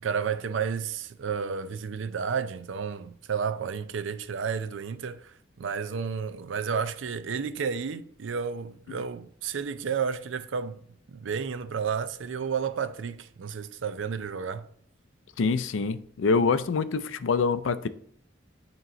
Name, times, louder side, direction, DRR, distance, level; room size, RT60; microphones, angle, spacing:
voice 1, 0.0-10.8 11.1-14.7, right 6 dB, 80° right, 0.5 m, -31 dB
voice 2, 15.4-17.9, left 4 dB, 90° left, 0.4 m, -25 dB
8.9 x 3.0 x 3.8 m
head